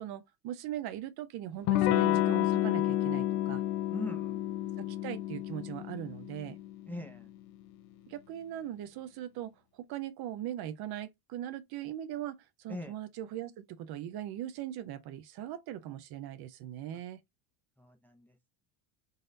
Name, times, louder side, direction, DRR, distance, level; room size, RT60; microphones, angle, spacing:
voice 1, 0.0-3.6 4.8-6.6 8.1-17.2, right 11 dB, 50° right, 0.6 m, -40 dB
Electric guitar / Strum, 1.7-7.0, left 13 dB, 75° left, 0.7 m, -30 dB
voice 2, 3.9-4.4 6.9-7.3 12.7-12.9 17.8-18.5, left 1 dB, 5° left, 0.5 m, -41 dB
4.0 x 3.8 x 2.5 m
cardioid pair, 125°, 50 cm